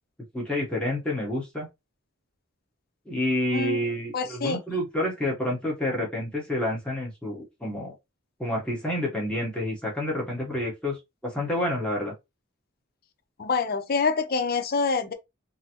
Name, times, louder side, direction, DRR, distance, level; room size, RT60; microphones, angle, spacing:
voice 1, 0.3-1.7 3.1-7.9 8.4-11.0 11.2-12.1, left 1 dB, 5° left, 0.9 m, -28 dB
voice 2, 4.1-4.6 13.4-15.1, left 4 dB, 50° left, 0.5 m, -26 dB
3.8 x 2.0 x 2.8 m
head